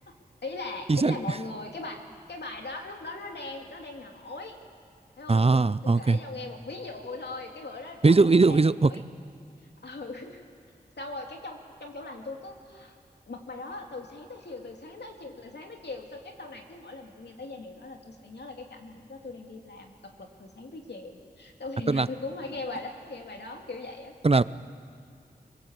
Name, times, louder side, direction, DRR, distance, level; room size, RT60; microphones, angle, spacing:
voice 1, 0.4-4.6 5.2-9.0 9.8-10.4 11.0-12.9 13.3-24.1, left 2 dB, 90° left, 2 dB, 2.6 m, -40 dB
voice 2, 5.3-6.2 8.0-8.9 21.9-22.1 24.2-24.4, right 3 dB, 35° right, 16 dB, 0.6 m, -20 dB
25.0 x 22.0 x 8.2 m, 2.2 s
cardioid pair, 45°, 17 cm